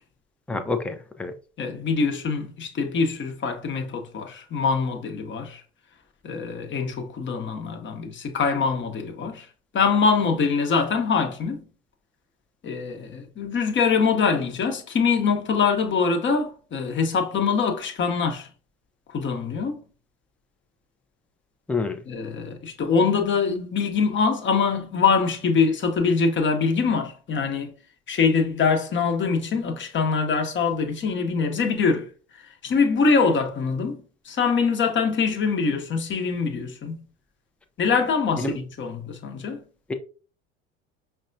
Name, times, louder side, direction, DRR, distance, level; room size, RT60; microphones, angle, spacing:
voice 1, 0.5-1.3 21.7-22.0 38.4-38.6 39.9-40.0, left 3 dB, 5° left, 0.5 m, -27 dB
voice 2, 1.6-5.6 6.2-9.5 9.7-11.6 12.6-18.5 19.1-19.8 22.1-27.7 28.1-37.0 37.8-39.6, left 5 dB, 35° left, 0.9 m, -24 dB
5.1 x 2.2 x 2.6 m
hypercardioid pair, 75°, 35 cm